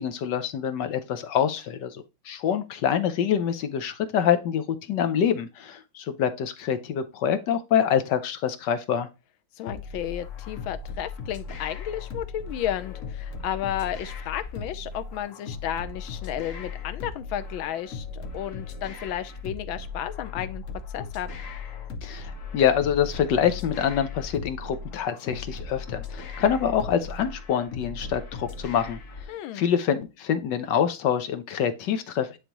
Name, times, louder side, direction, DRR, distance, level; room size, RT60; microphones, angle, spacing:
voice 1, 0.0-9.1 22.0-29.0 29.5-32.4, left 8 dB, 70° left, 1.3 m, -26 dB
voice 2, 9.6-20.6 20.9-21.3 29.3-29.7, left 11 dB, 85° left, 1.5 m, -33 dB
sound 1, 9.7-29.3, left 4 dB, 50° left, 1.0 m, -37 dB
9.8 x 3.3 x 2.9 m
omnidirectional pair, 2.1 m